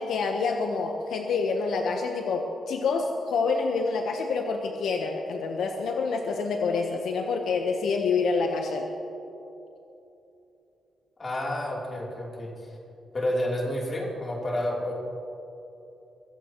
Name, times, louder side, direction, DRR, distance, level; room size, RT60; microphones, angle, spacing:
voice 1, 0.0-8.9, left 4 dB, 75° left, 3 dB, 1.0 m, -27 dB
voice 2, 11.2-12.8 13.1-14.9, left 1 dB, 30° left, -3 dB, 3.3 m, -30 dB
22.5 x 15.0 x 3.1 m, 2.9 s
cardioid pair, 130°, 0 cm